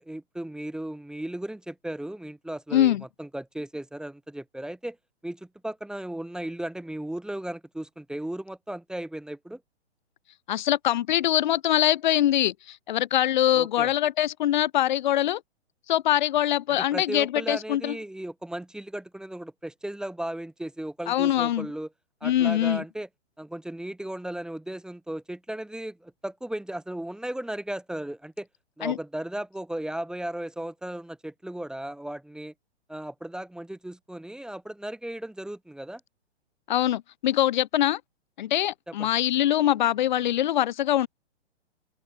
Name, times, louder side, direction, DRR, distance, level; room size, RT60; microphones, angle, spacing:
voice 1, 0.0-5.0 5.2-9.6 13.5-13.9 16.8-21.9 22.2-23.1 23.4-28.5 28.8-32.5 32.9-36.0 38.9-39.1, right 1 dB, ahead, 1.8 m, -36 dB
voice 2, 2.7-3.0 10.5-15.4 15.9-18.0 21.1-21.7 22.2-22.8 28.8-29.0 36.7-38.0 38.4-41.1, left 12 dB, 45° left, 0.5 m, -23 dB
open air
figure-of-eight pair, 125°, 34 cm